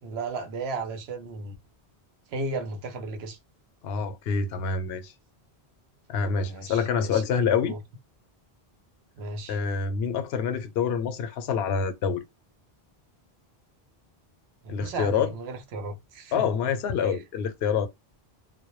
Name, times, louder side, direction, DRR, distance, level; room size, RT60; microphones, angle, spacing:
voice 1, 0.0-1.5 2.3-3.4 6.5-7.2 7.7-7.8 9.2-9.6 14.6-16.5, right 3 dB, 80° right, 0.9 m, -35 dB
voice 2, 3.8-5.1 6.1-7.8 9.5-12.2 14.7-15.3 16.3-17.9, left 6 dB, 75° left, 0.8 m, -26 dB
2.2 x 2.1 x 2.9 m
omnidirectional pair, 1.1 m